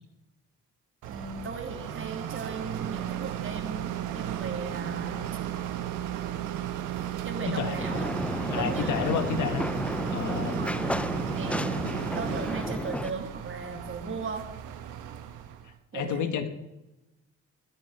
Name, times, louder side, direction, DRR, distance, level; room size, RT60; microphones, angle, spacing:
voice 1, 1.0-5.2 7.2-9.5 10.4-10.7 11.3-14.5 15.9-16.3, right 4 dB, 45° right, 4 dB, 3.0 m, -37 dB
sound 1, 1.0-15.7, right 11 dB, 90° right, 1.4 m, -35 dB
voice 2, 7.5-7.8 8.5-9.7 10.1-10.6 15.9-16.5, left 8 dB, 75° left, 9 dB, 1.8 m, -30 dB
sound 2, 7.8-13.1, left 1 dB, 5° left, 0.5 m, -32 dB
21.5 x 9.3 x 4.8 m, 0.98 s
cardioid pair, 90°, 30 cm